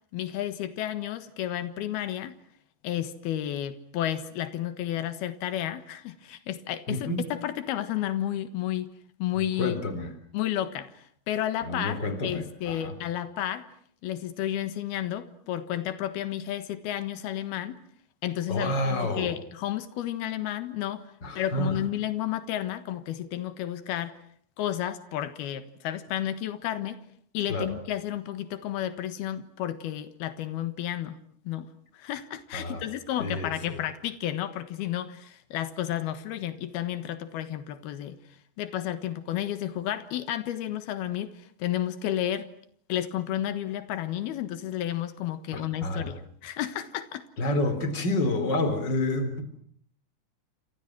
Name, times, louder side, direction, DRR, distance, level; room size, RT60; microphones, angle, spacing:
voice 1, 0.1-2.4 2.8-8.9 9.2-9.8 10.3-13.7 14.0-17.8 18.2-24.2 24.6-27.0 27.3-31.2 31.5-38.2 38.6-42.5 42.9-47.3, left 12 dB, 90° left, 3.4 m, -32 dB
voice 2, 6.9-7.3 9.4-10.1 11.6-12.9 18.5-19.3 21.2-21.8 27.5-27.7 32.5-32.8 33.2-33.8 45.5-46.1 47.4-49.4, left 1 dB, 30° left, 4.2 m, -29 dB
29.5 x 27.0 x 6.1 m
omnidirectional pair, 4.3 m